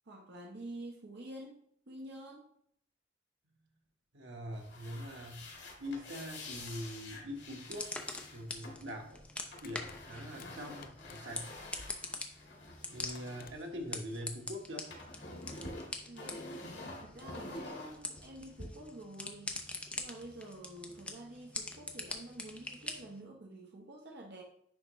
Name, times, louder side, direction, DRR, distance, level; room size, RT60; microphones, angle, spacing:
voice 1, 0.1-2.5 16.1-16.6 17.0-19.6 20.0-24.4, right 1 dB, 65° right, 0 dB, 0.9 m, -48 dB
voice 2, 4.1-5.5 5.8-7.9 8.3-9.2 9.6-11.6 12.9-14.9, equal, 90° right, 2 dB, 1.3 m, -43 dB
sound 1, 4.5-14.3 14.6-18.6, left 2 dB, 80° left, 2.0 m, -48 dB
sound 2, 7.3-23.2, left 2 dB, 5° left, 0.7 m, -45 dB
Crushing, 9.5-11.5 12.7-12.8 13.1-13.6, left 8 dB, 50° left, 0.4 m, -57 dB
9.9 x 3.7 x 3.1 m, 0.67 s
head